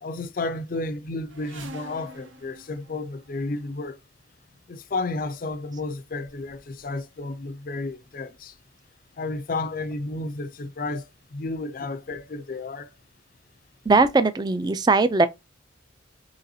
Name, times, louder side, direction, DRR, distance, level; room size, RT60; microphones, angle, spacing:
voice 1, 0.0-4.0 4.7-8.5 9.2-12.9, left 2 dB, 45° left, 0.4 m, -32 dB
sound 1, 1.3-3.8 4.8-5.0 5.7-5.8 6.1-6.9 7.3-7.8 8.5-8.6 8.9-9.0, right 2 dB, 80° right, 0.7 m, -47 dB
voice 2, 13.9-15.3, right 3 dB, 20° right, 0.3 m, -19 dB
4.0 x 3.0 x 2.7 m
head